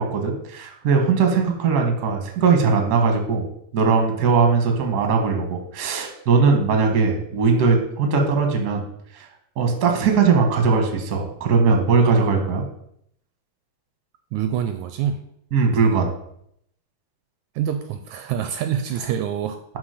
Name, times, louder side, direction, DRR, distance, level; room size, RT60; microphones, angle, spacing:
voice 1, 0.0-3.5 3.7-8.8 9.1-9.3 9.5-12.6 15.5-16.1, right 5 dB, 45° right, 4 dB, 1.3 m, -19 dB
voice 2, 14.3-15.2 17.6-19.6, right 9 dB, 80° right, 9 dB, 1.8 m, -26 dB
11.0 x 4.3 x 5.0 m, 0.72 s
omnidirectional pair, 3.7 m